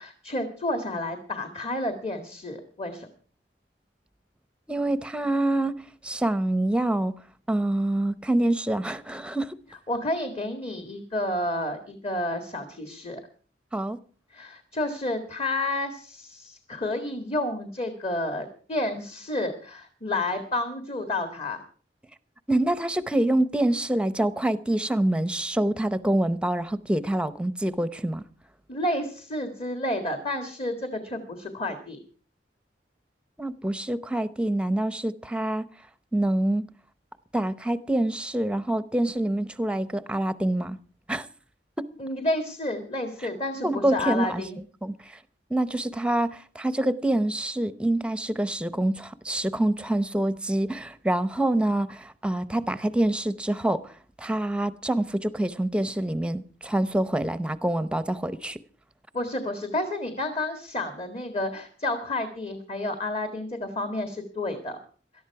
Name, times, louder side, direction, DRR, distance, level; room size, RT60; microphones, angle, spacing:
voice 1, 0.0-3.1 9.9-13.2 14.3-21.6 28.7-32.0 42.0-44.6 59.1-64.8, left 1 dB, 35° left, 1.8 m, -30 dB
voice 2, 4.7-5.7 6.0-7.2 7.5-9.6 13.7-14.0 22.5-28.2 33.4-35.6 36.1-36.6 37.3-40.8 41.1-41.3 41.8-41.9 43.6-44.4 44.8-45.2 45.5-53.9 54.2-58.6, right 1 dB, 5° right, 0.7 m, -26 dB
18.5 x 13.0 x 4.7 m
head